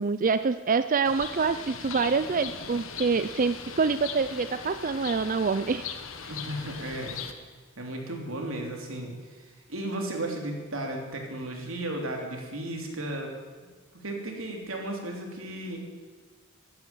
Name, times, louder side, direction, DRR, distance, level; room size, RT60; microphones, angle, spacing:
voice 1, 0.0-5.8, right 4 dB, 40° right, 11 dB, 0.5 m, -26 dB
Bird, 1.1-7.3, left 6 dB, 75° left, 1.5 m, -39 dB
voice 2, 6.3-7.1 7.8-13.3 13.9-15.9, right 1 dB, 80° right, 2 dB, 3.3 m, -35 dB
14.5 x 11.0 x 9.0 m, 1.4 s
head